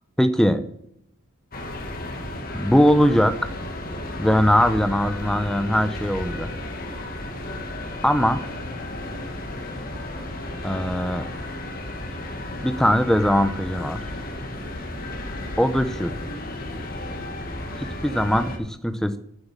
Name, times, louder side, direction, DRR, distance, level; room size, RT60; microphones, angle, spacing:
voice 1, 0.2-0.6 2.5-3.5 4.2-6.5 8.0-8.4 10.6-11.3 12.6-14.1 15.6-16.2 17.8-19.2, equal, ahead, 9 dB, 0.7 m, -21 dB
sound 1, 1.5-18.6, left 1 dB, 40° left, 1.7 m, -33 dB
9.2 x 7.8 x 7.3 m, 0.73 s
head